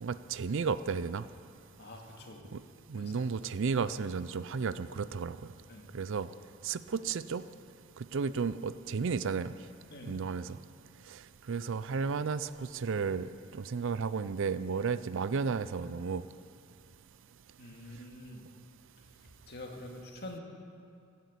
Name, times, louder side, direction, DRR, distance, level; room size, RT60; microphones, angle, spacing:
voice 1, 0.0-1.3 2.5-2.6 2.9-5.4 5.9-6.3 6.6-7.4 8.1-9.5 10.1-10.6 11.1-11.2 11.5-16.2, right 5 dB, 60° right, 0.5 m, -33 dB
voice 2, 1.8-2.4 3.0-3.3 5.7-5.9 9.9-10.2 17.6-18.4 19.5-20.4, left 1 dB, 50° left, 2.1 m, -46 dB
15.5 x 11.0 x 8.3 m
head